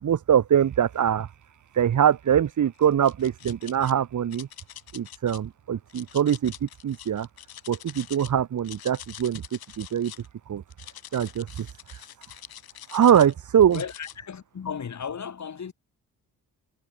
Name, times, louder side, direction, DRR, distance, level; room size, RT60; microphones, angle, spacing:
voice 1, 0.0-1.3 1.7-4.5 4.9-7.3 7.7-9.4 9.8-10.1 10.5-10.6 11.1-11.7 12.9-13.8, right 9 dB, 55° right, 1.4 m, -23 dB
sound 1, 2.8-3.9 4.3-5.4 5.9-8.3 8.6-10.3 10.7-13.3 13.7-14.2, left 12 dB, 85° left, 3.8 m, -44 dB
voice 2, 13.7-15.7, left 7 dB, 50° left, 4.4 m, -35 dB
cardioid pair, 95°, 36 cm